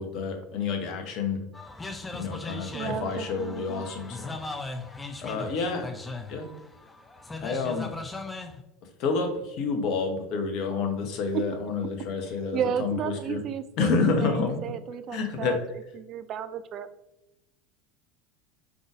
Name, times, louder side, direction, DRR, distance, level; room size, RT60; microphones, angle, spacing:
voice 1, 0.0-1.4 2.1-4.4 5.2-5.9 6.3-6.5 7.4-7.9 9.0-13.4 13.8-14.6 15.1-15.6, left 4 dB, 50° left, 5 dB, 0.8 m, -29 dB
sound 1, 1.5-8.6, left 3 dB, 15° left, 0.5 m, -39 dB
voice 2, 2.7-3.8 12.5-15.6 15.9-16.9, right 8 dB, 40° right, 12 dB, 0.3 m, -33 dB
4.8 x 3.8 x 2.4 m, 0.92 s
figure-of-eight pair, 70°, 0 cm